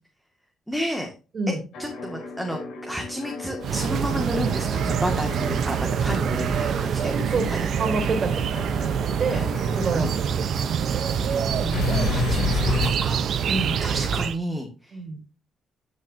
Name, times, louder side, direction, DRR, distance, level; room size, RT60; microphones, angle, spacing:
voice 1, 0.7-1.1 1.5-7.1 7.6-7.7 9.3-9.5 9.9-10.1 11.2-15.0, equal, ahead, 2 dB, 2.2 m, -31 dB
sound 1, 1.7-11.5 11.7-12.9, left 3 dB, 75° left, 4.6 m, -32 dB
sound 2, 3.6-14.4, right 7 dB, 65° right, 0.9 m, -25 dB
voice 2, 7.1-9.4 9.7-10.3 10.6-10.7 13.5-13.8 14.9-15.2, right 3 dB, 45° right, 3 dB, 3.5 m, -28 dB
11.5 x 6.4 x 2.8 m, 0.32 s
cardioid pair, 90°, 0 cm